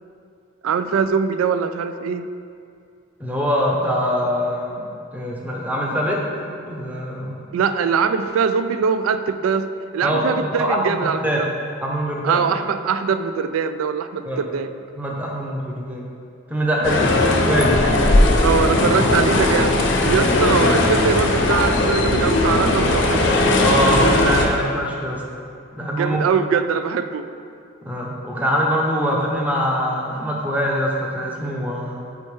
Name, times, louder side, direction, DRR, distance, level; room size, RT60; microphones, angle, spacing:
voice 1, 0.6-2.3 7.5-11.5 12.2-14.7 18.4-19.7 20.1-23.3 26.0-27.3, right 6 dB, 90° right, 10 dB, 0.3 m, -22 dB
voice 2, 3.2-6.2 6.6-7.4 10.0-11.4 11.8-12.4 14.3-14.5 15.0-16.1 16.5-17.8 23.3-25.2 25.7-26.2 27.8-32.0, equal, 5° right, -3 dB, 0.7 m, -23 dB
sound 1, 16.8-24.5, left 2 dB, 65° left, 0.7 m, -18 dB
8.5 x 4.4 x 3.3 m, 2.4 s
head